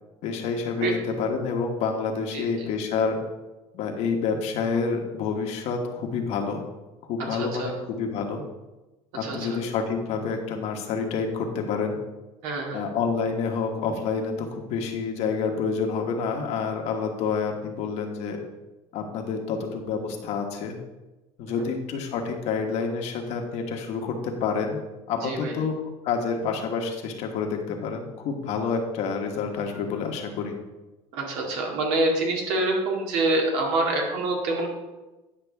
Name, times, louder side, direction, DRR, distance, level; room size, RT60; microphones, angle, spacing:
voice 1, 0.2-3.2 3.7-6.6 7.0-8.4 9.1-12.0 12.7-18.4 18.9-20.8 21.4-24.8 25.1-25.7 26.0-30.5, left 5 dB, 65° left, 3 dB, 1.3 m, -28 dB
voice 2, 2.3-2.7 7.3-7.7 9.2-9.5 12.4-12.9 25.2-25.5 31.1-34.7, right 2 dB, 75° right, 0 dB, 2.1 m, -26 dB
9.9 x 6.0 x 3.5 m, 1.1 s
cardioid pair, 125°, 12 cm